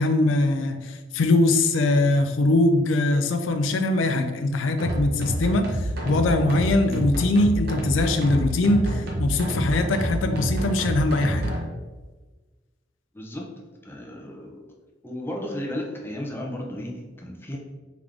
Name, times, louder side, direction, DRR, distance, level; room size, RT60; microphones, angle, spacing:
voice 1, 0.0-11.5, left 2 dB, 80° left, 7 dB, 0.4 m, -22 dB
sound 1, 4.8-11.6, right 1 dB, 55° right, 1.0 m, -27 dB
voice 2, 13.1-13.5 13.8-14.7 15.0-17.6, left 1 dB, 10° left, -1 dB, 0.6 m, -34 dB
3.7 x 3.4 x 3.4 m, 1.3 s
head